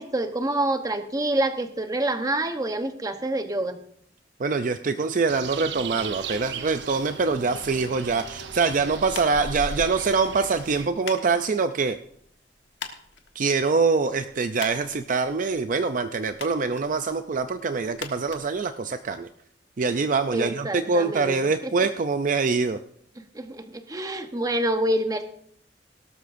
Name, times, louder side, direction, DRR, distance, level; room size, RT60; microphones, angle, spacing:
voice 1, 0.0-3.8 20.3-21.3 21.6-21.7 23.2-25.3, right 1 dB, 20° right, 7 dB, 0.9 m, -27 dB
voice 2, 4.4-12.0 13.4-19.3 19.8-22.8, right 4 dB, 50° right, 9 dB, 0.5 m, -24 dB
sound 1, 5.3-10.9, right 5 dB, 90° right, 0.8 m, -37 dB
sound 2, 9.1-19.3, left 6 dB, 80° left, 1.3 m, -44 dB
17.5 x 12.5 x 2.6 m, 0.65 s
head